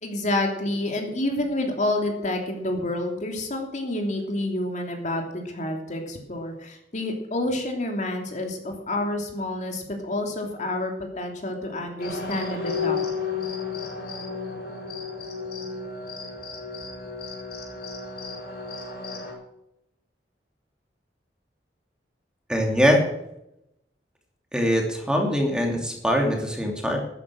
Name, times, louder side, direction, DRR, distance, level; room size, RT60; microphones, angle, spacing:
voice 1, 0.0-13.0, left 1 dB, 45° left, 3 dB, 2.9 m, -28 dB
sound 1, 12.0-19.3, left 5 dB, 65° left, 6.5 m, -33 dB
voice 2, 22.5-23.0 24.5-27.0, equal, 5° right, 1 dB, 2.8 m, -22 dB
13.0 x 11.0 x 6.3 m, 0.81 s
head